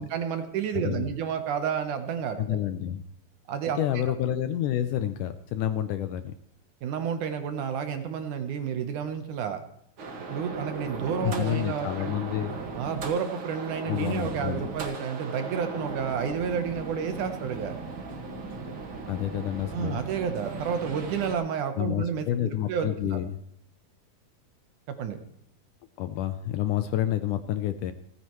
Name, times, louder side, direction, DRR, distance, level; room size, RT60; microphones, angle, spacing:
voice 1, 0.0-2.4 3.5-3.8 6.8-9.6 10.3-12.1 12.8-17.8 19.7-23.2 24.9-25.2, right 7 dB, 65° right, 8 dB, 2.3 m, -30 dB
voice 2, 0.7-1.1 2.4-3.0 3.8-6.3 11.2-12.6 13.9-14.7 19.1-20.0 21.8-23.4 26.0-27.9, left 11 dB, 75° left, 10 dB, 1.9 m, -29 dB
sound 1, 10.0-21.4, right 3 dB, 45° right, 2.1 m, -37 dB
29.0 x 9.9 x 3.1 m, 0.72 s
omnidirectional pair, 4.2 m